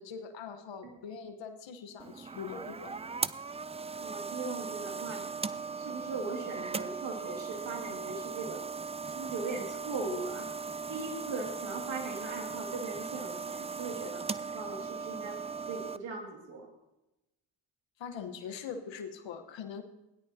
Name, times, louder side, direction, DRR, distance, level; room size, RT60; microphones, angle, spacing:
voice 1, 0.0-2.9 18.0-19.8, left 6 dB, 90° left, 7 dB, 1.1 m, -42 dB
sound 1, 2.0-16.0, right 5 dB, 15° right, 0.3 m, -38 dB
voice 2, 4.0-5.2 5.8-8.6 9.1-10.5 10.9-14.2 14.5-15.4 15.7-16.7, right 3 dB, 85° right, 1 dB, 2.3 m, -39 dB
17.0 x 10.5 x 2.8 m, 0.94 s
supercardioid pair, 45°, 44 cm